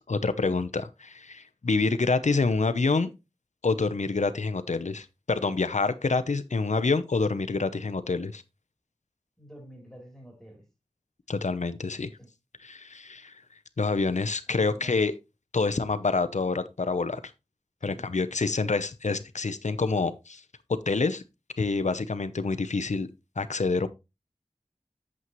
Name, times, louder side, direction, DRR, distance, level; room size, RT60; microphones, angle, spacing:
voice 1, 0.1-3.1 3.6-8.4 11.3-12.1 12.6-13.4 13.8-15.1 15.5-17.2 17.8-20.4 20.9-21.2 21.6-23.1 23.4-23.9, left 4 dB, 90° left, 0.7 m, -27 dB
voice 2, 9.4-10.7 12.2-12.3 14.5-15.0 17.8-18.5, right 1 dB, 5° left, 3.2 m, -48 dB
8.5 x 7.6 x 3.1 m
wide cardioid pair, 55°, 12 cm